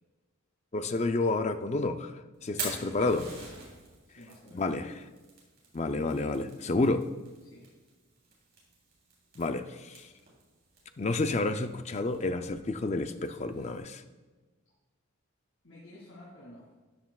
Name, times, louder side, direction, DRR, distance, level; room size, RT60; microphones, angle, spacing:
voice 1, 0.7-3.3 4.5-4.9 5.7-7.1 9.4-10.1 11.0-14.0, left 2 dB, 30° left, 9 dB, 0.4 m, -30 dB
Fire, 2.3-13.8, right 3 dB, 45° right, 3.3 m, -47 dB
voice 2, 2.5-3.0 4.0-4.8 7.4-7.7 15.6-16.7, left 1 dB, 70° left, -6 dB, 2.5 m, -51 dB
13.0 x 9.4 x 2.4 m, 1.3 s
head